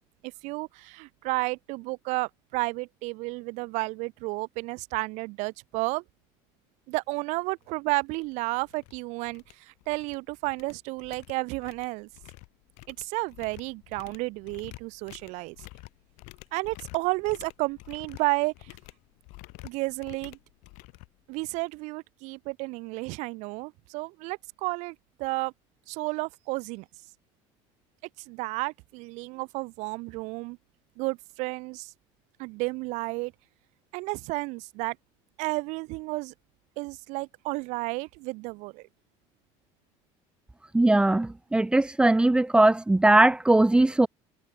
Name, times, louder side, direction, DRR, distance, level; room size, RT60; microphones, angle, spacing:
voice 1, 0.4-6.0 6.9-12.1 12.9-15.6 16.5-18.8 19.6-20.4 21.3-25.5 25.9-26.9 28.3-30.6 31.0-31.9 32.4-33.3 33.9-35.0 35.4-36.3 36.8-38.9, right 25 dB, 75° right, 1.9 m, -32 dB
sound 1, 7.6-7.7 8.1-8.3 8.6-8.9 9.2-10.2 10.5-21.7, left 26 dB, 75° left, 7.6 m, -49 dB
voice 2, 40.7-44.1, right 2 dB, 10° right, 1.3 m, -20 dB
cardioid pair, 135°, 12 cm